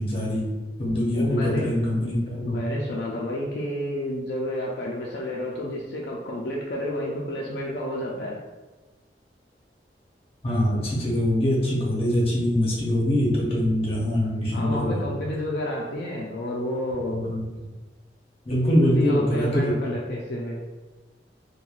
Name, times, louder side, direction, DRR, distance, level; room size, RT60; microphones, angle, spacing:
voice 1, 0.0-2.6 10.4-15.0 17.0-17.4 18.5-19.7, left 1 dB, 35° left, -5 dB, 0.7 m, -23 dB
voice 2, 1.1-1.7 2.4-8.4 14.5-17.3 18.8-20.6, left 1 dB, 65° left, -3 dB, 0.3 m, -30 dB
3.0 x 2.2 x 2.3 m, 1.2 s
head